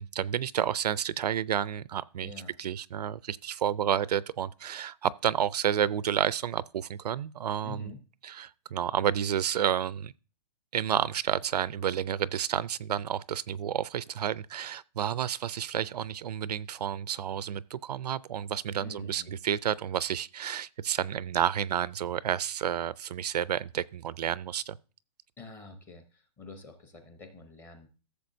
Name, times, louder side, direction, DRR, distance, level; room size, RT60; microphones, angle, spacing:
voice 1, 0.0-2.3 2.6-7.9 8.2-10.1 10.7-24.8, right 9 dB, 70° right, 0.4 m, -30 dB
voice 2, 2.2-2.5 7.6-8.0 18.8-19.4 25.4-27.9, left 4 dB, 10° left, 0.7 m, -47 dB
14.5 x 6.8 x 2.6 m
hypercardioid pair, 170°, 21 cm